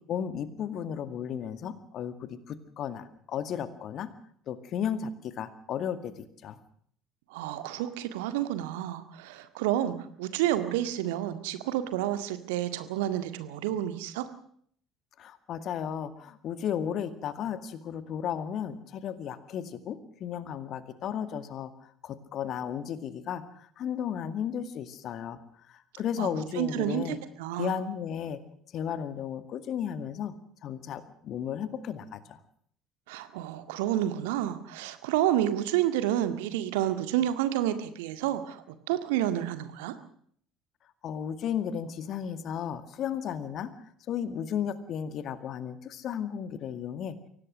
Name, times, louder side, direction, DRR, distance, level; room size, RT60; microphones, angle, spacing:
voice 1, 0.1-4.1 4.5-6.6 15.2-25.4 25.7-27.2 27.6-28.4 28.7-30.3 30.6-32.4 41.0-47.2, left 8 dB, 50° left, 12 dB, 2.1 m, -34 dB
voice 2, 7.3-14.3 26.2-27.8 33.1-39.9, right 12 dB, 65° right, 10 dB, 1.9 m, -30 dB
24.0 x 18.0 x 6.5 m, 0.62 s
figure-of-eight pair, 60°, 0 cm